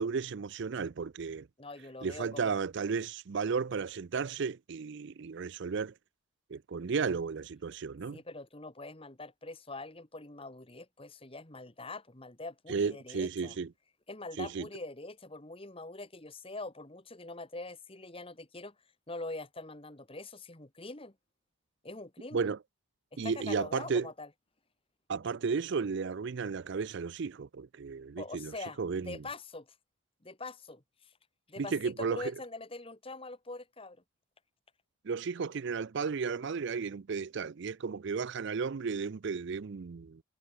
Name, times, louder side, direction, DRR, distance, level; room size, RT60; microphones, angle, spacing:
voice 1, 0.0-1.5 2.0-5.9 6.5-8.2 12.7-13.7 14.4-14.7 22.3-22.6 23.2-24.1 25.1-29.2 31.6-32.3 35.0-40.2, right 5 dB, 55° right, 0.4 m, -34 dB
voice 2, 1.6-2.5 8.1-13.5 14.1-18.7 19.1-21.1 21.8-22.5 23.2-24.3 28.2-29.7 30.2-31.1 31.5-34.0, left 2 dB, 25° left, 1.7 m, -44 dB
head